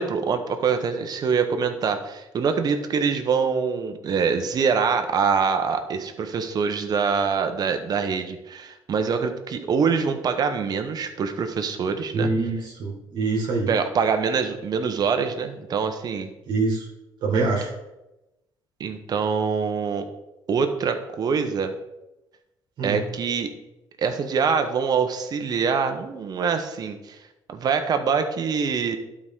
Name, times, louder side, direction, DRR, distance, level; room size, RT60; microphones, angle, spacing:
voice 1, 0.0-12.3 13.7-16.3 18.8-20.1 20.5-21.7 22.8-23.5 24.0-27.2 27.5-29.0, right 6 dB, 50° right, 7 dB, 1.1 m, -24 dB
voice 2, 12.1-13.7 16.5-16.8 17.2-17.7 22.8-23.0, right 3 dB, 65° right, -2 dB, 1.9 m, -25 dB
11.5 x 4.9 x 3.8 m, 0.95 s
cardioid pair, 100°, 9 cm